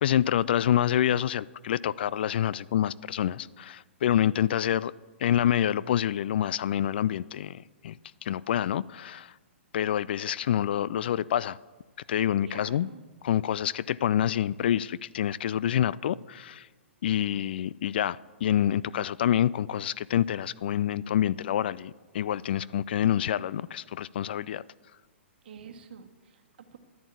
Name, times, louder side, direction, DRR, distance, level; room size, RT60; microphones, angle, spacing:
voice 1, 0.0-4.9 5.2-8.0 8.2-9.3 9.7-11.6 12.1-12.9 13.2-16.7 17.0-24.6, left 10 dB, 50° left, 0.4 m, -27 dB
voice 2, 12.4-13.0 25.4-26.8, right 7 dB, 50° right, 1.6 m, -48 dB
11.0 x 10.5 x 8.4 m
figure-of-eight pair, 115°, 7 cm